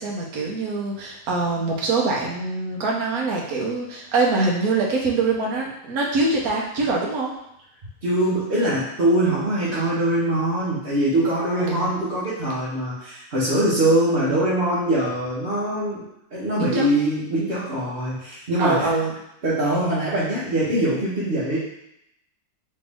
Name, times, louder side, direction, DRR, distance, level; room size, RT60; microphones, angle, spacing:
voice 1, 0.0-7.3 11.5-12.0 16.6-16.9 18.6-19.1, right 3 dB, 60° right, -2 dB, 1.3 m, -24 dB
voice 2, 8.0-16.0 16.3-18.9 19.4-21.6, right 1 dB, 40° right, -11 dB, 1.1 m, -22 dB
4.3 x 3.1 x 3.5 m, 0.80 s
omnidirectional pair, 1.8 m